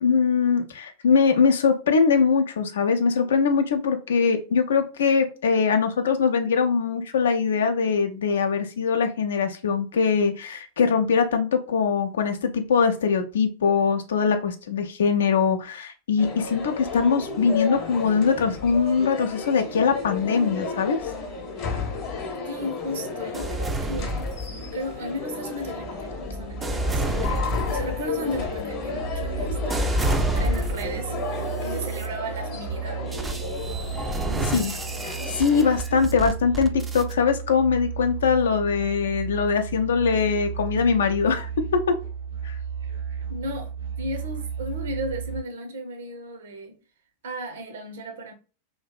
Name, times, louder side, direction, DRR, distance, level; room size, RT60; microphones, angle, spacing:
voice 1, 0.0-21.0 34.5-34.7 35.3-41.5 42.4-42.6, left 5 dB, 65° left, 0.4 m, -22 dB
sound 1, 16.2-35.8, left 4 dB, 40° left, 0.8 m, -33 dB
voice 2, 22.5-24.3 24.7-31.2 31.6-33.1 34.3-34.8 35.9-36.0 43.3-46.8 47.2-48.3, equal, 60° right, 0.5 m, -35 dB
sound 2, 23.3-24.9 25.6-31.1 31.7-32.1 33.1-37.1, right 1 dB, 15° right, 0.3 m, -29 dB
Musical instrument, 29.0-45.4, right 7 dB, 90° right, 1.2 m, -34 dB
2.7 x 2.3 x 2.2 m
figure-of-eight pair, 90°, 0 cm